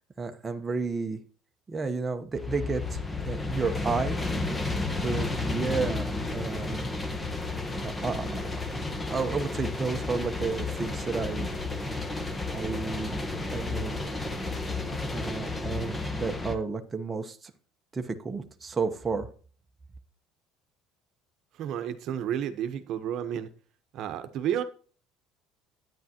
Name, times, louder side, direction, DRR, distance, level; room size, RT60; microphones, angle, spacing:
voice 1, 0.2-1.2 1.7-4.2 5.0-6.9 7.8-11.5 12.5-13.2 13.5-14.1 15.1-17.5 17.9-19.3, right 4 dB, 20° right, 0.9 m, -32 dB
sound 1, 2.3-16.6, left 3 dB, 15° left, 1.2 m, -32 dB
voice 2, 21.6-23.5 23.9-24.6, right 10 dB, 55° right, 1.0 m, -31 dB
10.5 x 9.5 x 2.9 m
cardioid pair, 135°, 0 cm